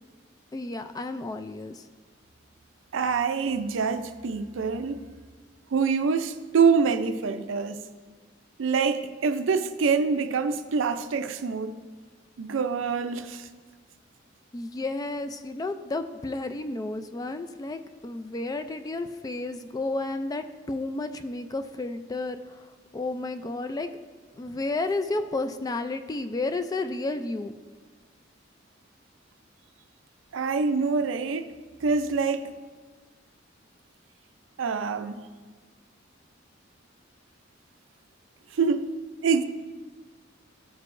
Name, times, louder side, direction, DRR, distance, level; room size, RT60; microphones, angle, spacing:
voice 1, 0.5-1.8 14.5-22.7 22.9-23.9 24.3-27.5, left 2 dB, 20° left, 0.3 m, -32 dB
voice 2, 2.9-5.1 5.7-7.8 8.6-11.8 12.4-13.5 30.3-31.5 31.8-32.5 34.6-35.2 38.5-38.9 39.2-39.4, right 5 dB, 85° right, 0.4 m, -25 dB
13.5 x 4.7 x 2.5 m
head